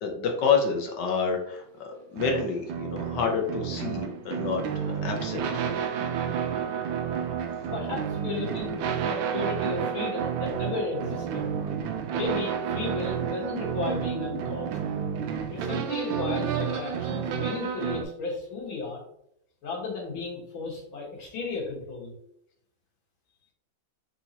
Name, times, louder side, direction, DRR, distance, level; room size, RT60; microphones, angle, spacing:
voice 1, 0.0-5.5, left 5 dB, 65° left, 1 dB, 1.4 m, -28 dB
sound 1, 2.2-18.0, right 8 dB, 75° right, 1.3 m, -30 dB
voice 2, 7.7-11.5 12.1-14.8 15.5-19.0 19.6-22.1, left 4 dB, 85° left, -3 dB, 2.3 m, -34 dB
4.5 x 4.2 x 2.8 m, 0.75 s
omnidirectional pair, 2.2 m